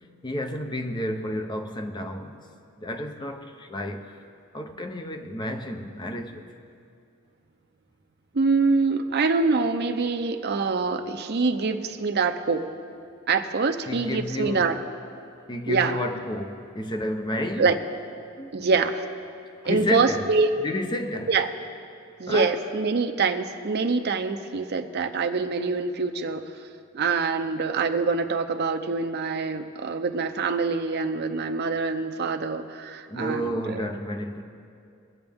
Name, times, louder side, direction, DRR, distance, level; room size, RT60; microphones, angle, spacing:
voice 1, 0.2-2.4 2.8-4.2 4.5-6.5 13.9-14.8 15.5-17.8 18.4-18.5 19.6-20.2 20.6-21.3 22.3-22.6 33.1-34.4, left 1 dB, 20° left, 0.8 m, -31 dB
voice 2, 8.3-12.7 13.3-14.8 15.7-16.0 17.6-17.8 18.5-19.0 19.6-20.5 21.3-21.5 22.2-26.6 26.9-33.8, right 4 dB, 50° right, 0.6 m, -25 dB
21.0 x 7.8 x 3.6 m
head